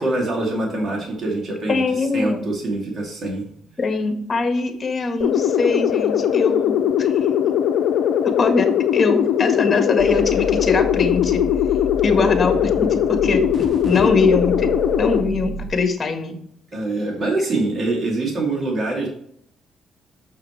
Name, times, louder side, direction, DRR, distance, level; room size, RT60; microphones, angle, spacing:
voice 1, 0.0-1.8 2.1-3.4 16.7-19.1, right 2 dB, 50° right, -1 dB, 2.8 m, -24 dB
voice 2, 1.7-2.4 3.8-7.2 8.4-11.5 12.0-13.5 13.8-14.7 15.0-16.4, left 3 dB, 35° left, 5 dB, 1.6 m, -22 dB
sound 1, 5.2-15.2, left 9 dB, 85° left, 0.5 m, -20 dB
sound 2, 10.0-15.7, left 2 dB, 20° right, 2.8 m, -31 dB
6.5 x 6.4 x 3.3 m, 0.66 s
cardioid pair, 90°, 0 cm